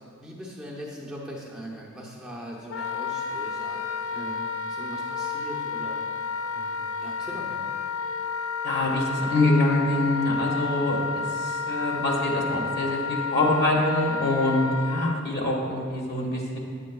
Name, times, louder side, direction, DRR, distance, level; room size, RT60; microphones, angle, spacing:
voice 1, 0.2-6.0 6.5-7.7, equal, 5° right, -5 dB, 0.7 m, -40 dB
Wind instrument woodwind instrument, 2.7-15.2, left 5 dB, 85° left, 0.4 m, -31 dB
voice 2, 8.6-16.6, left 2 dB, 50° left, -2 dB, 1.3 m, -25 dB
8.9 x 7.6 x 2.3 m, 2.3 s
head